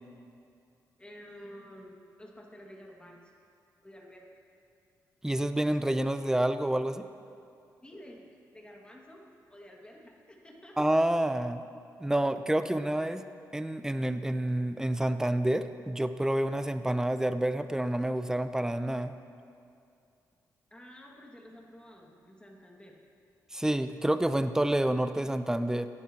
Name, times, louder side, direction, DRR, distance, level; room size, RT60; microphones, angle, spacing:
voice 1, 1.0-3.3 3.8-4.3 7.8-8.3 8.5-10.8 20.7-23.0, equal, 15° left, 0 dB, 2.1 m, -50 dB
voice 2, 5.2-7.1 10.8-11.6 12.0-13.2 13.5-19.2 23.5-25.9, right 1 dB, 10° right, 10 dB, 0.6 m, -28 dB
17.5 x 10.5 x 3.0 m, 2.5 s
cardioid pair, 65°, 7 cm